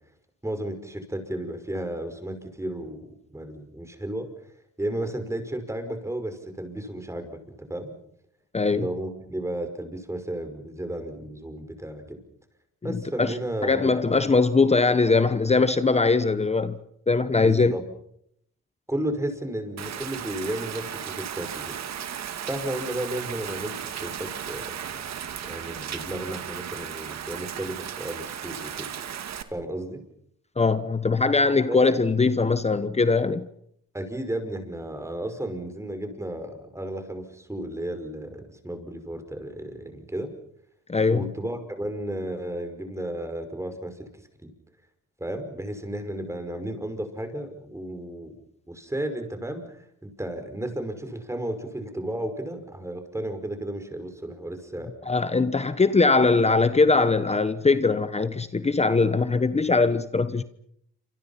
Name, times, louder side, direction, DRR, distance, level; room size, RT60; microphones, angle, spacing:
voice 1, 0.4-4.3 4.8-8.0 8.7-12.2 12.8-14.0 17.4-17.8 18.9-21.8 22.5-24.7 25.4-28.9 29.5-30.0 31.7-31.8 33.9-40.3 41.1-44.1 44.4-44.5 45.2-48.3 48.7-54.9, right 1 dB, 10° right, 5.6 m, -33 dB
voice 2, 8.5-8.9 12.9-13.4 13.6-16.8 17.1-17.7 30.6-33.5 40.9-41.2 55.1-60.4, left 4 dB, 20° left, 1.1 m, -21 dB
Rain, 19.8-29.4, right 9 dB, 60° right, 2.2 m, -35 dB
28.0 x 26.5 x 5.8 m
cardioid pair, 90°, 30 cm